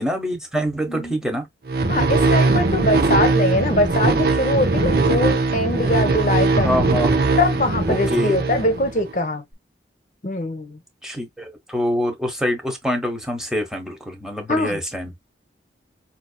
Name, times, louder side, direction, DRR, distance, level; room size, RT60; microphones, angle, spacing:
voice 1, 0.0-1.5 6.6-7.2 7.9-8.4 11.0-15.1, equal, 5° right, 1.2 m, -25 dB
voice 2, 0.9-1.2 1.9-6.7 7.4-9.4 10.2-10.8 14.5-14.8, left 1 dB, 45° left, 1.0 m, -22 dB
sound 1, 1.7-9.1, right 3 dB, 55° right, 0.8 m, -20 dB
5.7 x 2.8 x 2.3 m
head